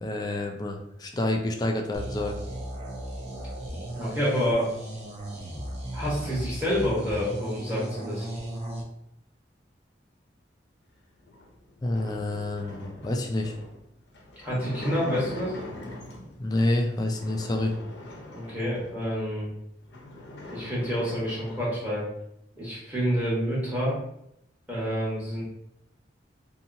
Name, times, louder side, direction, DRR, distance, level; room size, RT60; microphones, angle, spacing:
voice 1, 0.0-2.3 11.8-13.5 16.4-17.7, left 1 dB, 20° left, 2 dB, 0.3 m, -28 dB
sound 1, 1.9-8.8, right 1 dB, 40° right, 0.6 m, -36 dB
voice 2, 4.0-4.7 5.9-8.3 14.4-15.6 18.3-19.5 20.5-22.1 22.5-24.0 24.7-25.4, equal, 10° right, -8 dB, 1.1 m, -28 dB
sound 2, 11.2-16.4 17.0-19.0 19.5-19.6 19.8-21.7, left 2 dB, 70° left, 0.7 m, -42 dB
2.8 x 2.7 x 2.6 m, 0.77 s
head